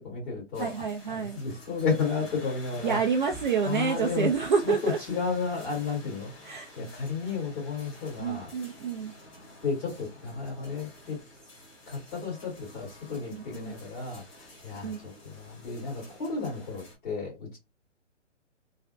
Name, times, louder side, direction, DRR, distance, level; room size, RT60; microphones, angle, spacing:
voice 1, 0.0-3.0 3.6-4.3 4.6-6.3 6.8-8.5 9.6-11.2 11.9-17.6, left 5 dB, 35° left, 1.8 m, -33 dB
sound 1, 0.5-17.0, left 1 dB, 20° left, 1.0 m, -50 dB
voice 2, 0.6-1.4 2.8-5.0 6.4-6.7 8.2-9.1 13.3-13.7 14.8-15.0, right 6 dB, 45° right, 0.5 m, -28 dB
3.2 x 2.1 x 2.5 m
hypercardioid pair, 140°, 37 cm